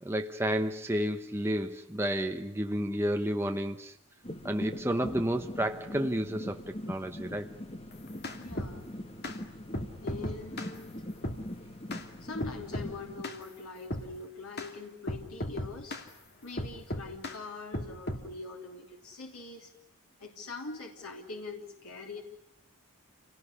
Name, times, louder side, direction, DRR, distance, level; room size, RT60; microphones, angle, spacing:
voice 1, 0.0-3.9 4.4-6.6 6.9-7.5, equal, 10° right, 0.9 m, -31 dB
sound 1, 4.2-13.2, left 1 dB, 25° left, 1.6 m, -42 dB
sound 2, 7.9-8.8 9.2-9.4 9.7-10.7 11.2-11.4 11.9-12.1 12.4-12.9 13.2-13.4 13.9-14.1 14.6-14.7 15.1-16.1 16.6-17.4 17.7-18.3, left 1 dB, 45° left, 2.5 m, -36 dB
voice 2, 8.4-8.9 9.2-9.3 10.0-11.0 12.2-16.0 16.4-19.7 20.2-22.2, left 3 dB, 85° left, 3.3 m, -43 dB
28.5 x 19.0 x 9.9 m
head